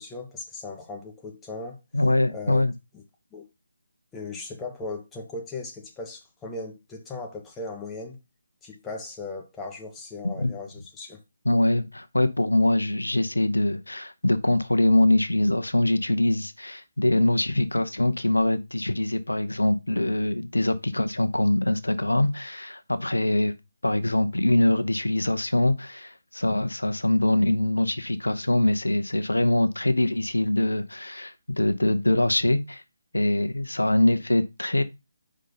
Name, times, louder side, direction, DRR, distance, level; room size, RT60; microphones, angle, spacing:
voice 1, 0.0-1.8 2.3-2.7 2.9-3.0 3.3-3.5 4.1-8.2 8.6-11.2, left 3 dB, 10° left, 1.0 m, -37 dB
voice 2, 1.9-2.7 10.4-10.5 11.4-23.5 23.8-32.8 33.1-34.8, left 1 dB, 85° left, 0.7 m, -23 dB
5.4 x 3.7 x 5.4 m
figure-of-eight pair, 150°, 0 cm